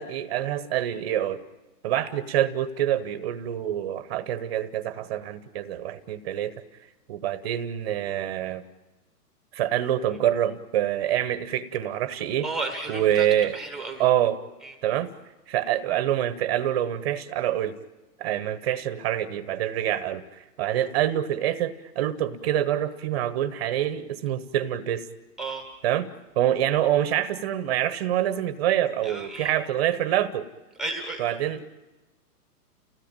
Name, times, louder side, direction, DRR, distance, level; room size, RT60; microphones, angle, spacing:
voice 1, 0.0-1.4 1.8-6.5 7.1-8.6 9.5-12.5 12.9-13.6 14.0-14.4 14.8-15.1 15.5-17.8 18.2-25.0 25.8-26.1 26.4-30.5 31.2-31.6, right 11 dB, 25° right, 12 dB, 0.9 m, -26 dB
voice 2, 12.4-13.3 13.5-14.0 14.6-14.8 25.4-25.6 29.0-29.5 30.8-31.2, right 3 dB, ahead, 5 dB, 1.1 m, -33 dB
30.0 x 17.0 x 8.9 m, 1.1 s
hypercardioid pair, 155°, 47 cm